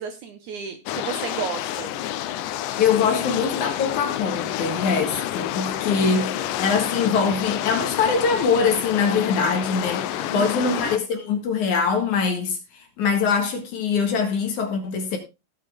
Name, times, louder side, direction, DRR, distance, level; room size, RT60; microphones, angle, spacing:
voice 1, 0.0-1.9 10.3-10.9, right 7 dB, 65° right, 2.1 m, -33 dB
sound 1, 0.9-11.0, left 12 dB, 80° left, 2.0 m, -29 dB
voice 2, 2.8-12.6 13.0-15.2, left 5 dB, 60° left, 2.8 m, -23 dB
17.0 x 5.9 x 3.5 m
omnidirectional pair, 4.3 m